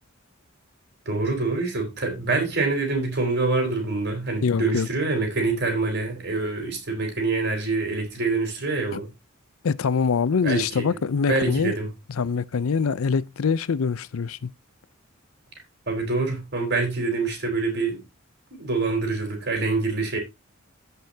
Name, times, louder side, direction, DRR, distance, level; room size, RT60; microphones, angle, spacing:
voice 1, 1.1-9.1 10.4-10.9 11.3-11.9 15.9-18.0 18.5-20.2, right 3 dB, 55° right, 4.0 m, -25 dB
voice 2, 4.4-4.9 8.9-9.0 9.6-11.7 12.1-14.5, left 5 dB, 80° left, 0.5 m, -24 dB
16.0 x 5.6 x 2.7 m
head